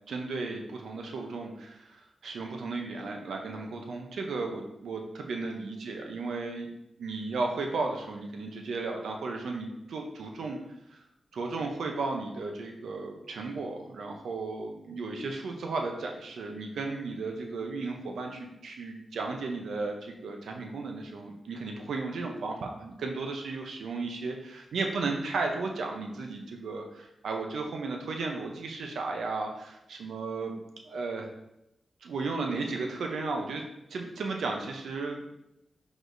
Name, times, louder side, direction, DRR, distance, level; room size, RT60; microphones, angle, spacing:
voice 1, 0.1-6.7 7.0-10.6 10.9-11.0 11.3-31.3 32.0-33.6 33.9-35.2, right 3 dB, 85° right, 2 dB, 0.6 m, -34 dB
4.9 x 4.0 x 2.6 m, 0.84 s
cardioid pair, 70°, 0 cm